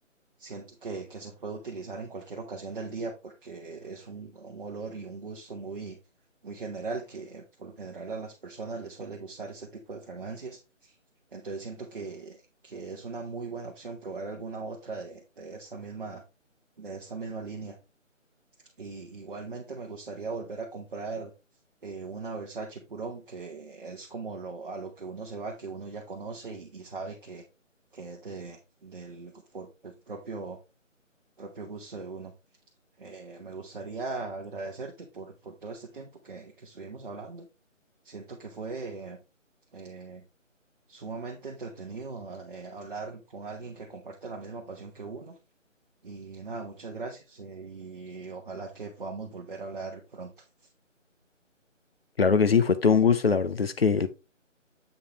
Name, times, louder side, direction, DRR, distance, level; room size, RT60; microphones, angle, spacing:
voice 1, 0.4-6.0 6.4-11.0 11.3-16.2 16.8-17.8 18.8-21.3 21.8-27.4 27.9-30.6 31.4-32.3 33.0-37.5 38.0-39.2 39.7-40.2 40.9-45.4 46.0-50.7, right 4 dB, 40° right, 1.0 m, -39 dB
voice 2, 52.2-54.1, left 5 dB, 50° left, 0.7 m, -22 dB
7.5 x 4.7 x 2.9 m
figure-of-eight pair, 155°, 39 cm